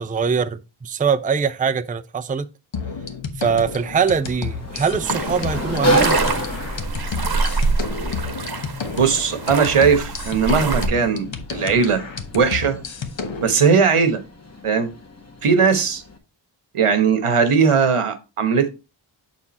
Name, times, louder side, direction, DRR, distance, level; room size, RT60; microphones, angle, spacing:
voice 1, 0.0-2.5 3.4-6.2, right 6 dB, 20° right, 0.4 m, -22 dB
sound 1, 2.7-13.5, left 5 dB, 60° left, 1.1 m, -31 dB
Sliding door, 3.5-16.2, right 1 dB, 30° left, 1.5 m, -30 dB
sound 2, 5.1-10.9, right 4 dB, 45° right, 1.0 m, -25 dB
voice 2, 9.0-12.0 12.3-12.8 13.4-14.2 14.6-14.9 15.4-16.0 16.7-18.7, right 6 dB, 85° right, 1.2 m, -18 dB
7.0 x 4.4 x 4.2 m
wide cardioid pair, 75°, 50 cm